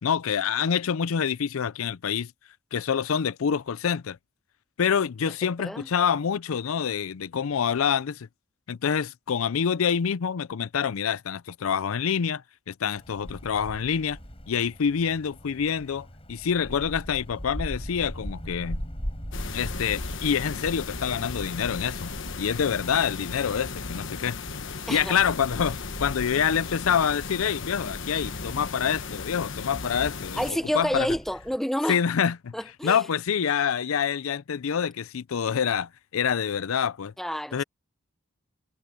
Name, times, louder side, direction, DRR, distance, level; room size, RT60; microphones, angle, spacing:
voice 1, 0.0-2.3 2.7-4.2 4.8-8.3 8.7-12.4 12.7-14.2 14.5-18.8 19.5-24.4 24.9-31.1 31.9-32.5 32.8-37.1 37.5-37.6, left 7 dB, 85° left, 0.5 m, -26 dB
Wind, 13.0-31.6, equal, 30° left, 7.8 m, -41 dB
sound 1, 19.3-30.5, left 4 dB, 65° left, 1.3 m, -36 dB
voice 2, 24.9-25.2 30.4-32.0 32.5-33.1 37.2-37.6, equal, ahead, 0.7 m, -29 dB
head